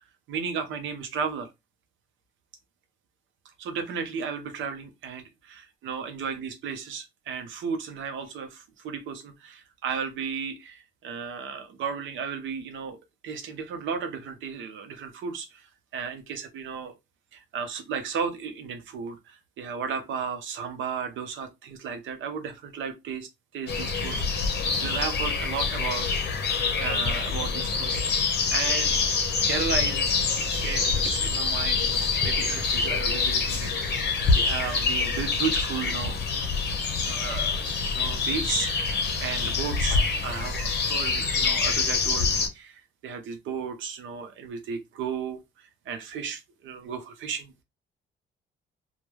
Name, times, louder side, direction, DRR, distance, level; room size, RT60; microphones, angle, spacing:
voice 1, 0.3-1.5 3.6-13.0 13.2-16.9 17.3-24.5 24.8-26.1 26.8-28.2 28.5-29.2 29.5-30.1 30.3-33.7 34.3-36.2 37.0-38.7 39.2-47.6, right 6 dB, 75° right, 0.7 m, -34 dB
sound 1, 23.7-42.5, left 4 dB, 55° left, 0.6 m, -26 dB
2.2 x 2.2 x 3.0 m
cardioid pair, 90°, 20 cm